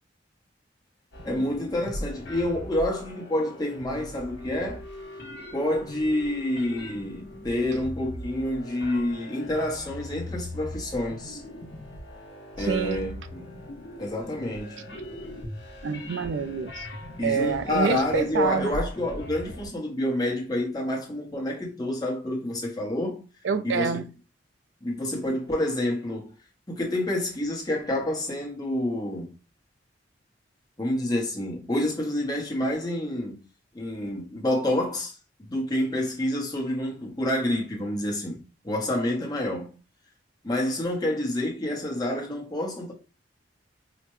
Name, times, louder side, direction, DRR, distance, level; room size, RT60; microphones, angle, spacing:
sound 1, 1.1-19.7, left 1 dB, 75° left, 1.2 m, -40 dB
voice 1, 1.2-4.8 5.5-11.4 12.6-13.5 14.0-14.8 17.2-23.3 23.6-23.9 24.8-26.3 26.7-29.4 30.8-33.4 33.7-35.2 35.5-39.8 40.4-42.9, left 1 dB, 20° left, 1.0 m, -28 dB
voice 2, 12.6-13.1 15.8-16.9 17.2-18.8 23.4-24.0, right 6 dB, 80° right, 0.4 m, -27 dB
4.9 x 2.1 x 3.1 m
head